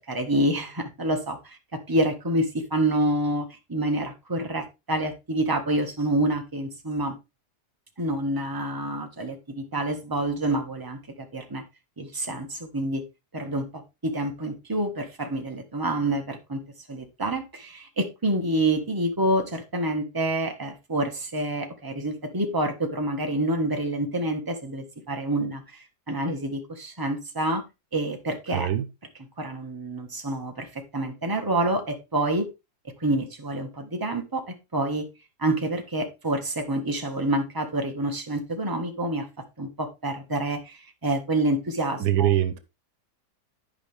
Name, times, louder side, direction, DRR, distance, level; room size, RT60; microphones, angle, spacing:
voice 1, 0.0-1.6 1.9-7.1 8.0-11.6 12.0-13.0 13.3-16.6 16.9-27.6 27.9-28.7 29.4-32.5 33.0-35.1 35.4-39.3 39.6-42.3, right 1 dB, 15° right, 1.4 m, -27 dB
voice 2, 28.5-28.9 42.0-42.6, right 12 dB, 90° right, 1.5 m, -23 dB
11.0 x 5.3 x 3.4 m
omnidirectional pair, 1.7 m